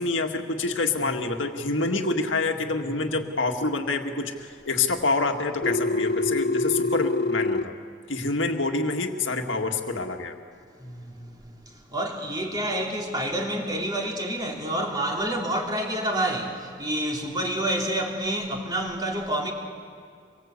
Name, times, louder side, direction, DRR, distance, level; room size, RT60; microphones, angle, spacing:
voice 1, 0.0-7.7 8.1-10.3, left 3 dB, 70° left, 2.0 m, -27 dB
voice 2, 2.8-3.2 8.2-8.3 10.8-19.5, right 1 dB, 20° right, 3.1 m, -29 dB
Telephone, 5.6-7.6, left 2 dB, 50° left, 1.1 m, -25 dB
25.5 x 22.5 x 8.3 m
head